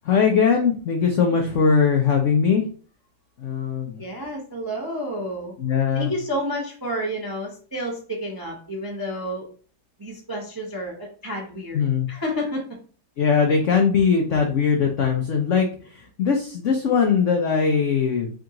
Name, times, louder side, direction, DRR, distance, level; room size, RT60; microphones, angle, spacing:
voice 1, 0.0-2.6 3.4-4.0 5.6-6.1 11.7-12.1 13.2-18.3, left 6 dB, 90° left, 2 dB, 0.6 m, -20 dB
voice 2, 4.0-5.5 5.9-9.5 10.0-11.8 12.1-12.8, equal, 35° right, -2 dB, 0.3 m, -30 dB
3.6 x 2.9 x 3.6 m, 0.42 s
omnidirectional pair, 2.0 m